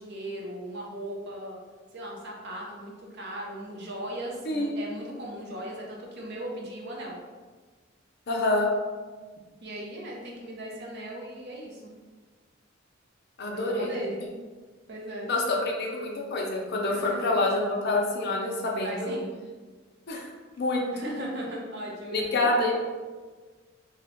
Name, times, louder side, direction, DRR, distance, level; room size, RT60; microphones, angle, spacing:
voice 1, 0.0-1.6 1.9-7.2 9.6-11.9 13.5-14.2 14.9-15.3 16.9-17.2 18.8-19.3 20.8-22.7, right 1 dB, 55° right, -2 dB, 0.7 m, -37 dB
voice 2, 8.3-8.7 13.4-13.9 15.3-19.2 20.1-20.3 20.6-20.9 22.1-22.7, left 2 dB, 55° left, -1 dB, 0.6 m, -27 dB
2.9 x 2.4 x 3.6 m, 1.4 s
head